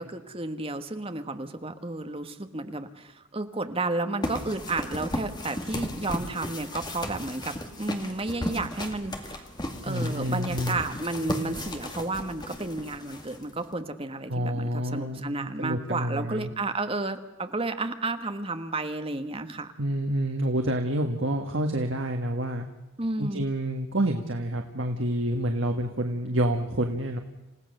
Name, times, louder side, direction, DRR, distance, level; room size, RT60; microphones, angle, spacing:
voice 1, 0.0-9.5 9.8-19.7 23.0-23.4, right 2 dB, 25° right, 8 dB, 1.4 m, -32 dB
sound 1, 4.2-13.7, left 1 dB, 20° left, 2.2 m, -35 dB
voice 2, 9.9-10.8 14.3-16.5 19.8-22.7 23.2-27.2, right 1 dB, 60° right, 4 dB, 1.7 m, -28 dB
28.5 x 16.5 x 6.7 m, 1.1 s
head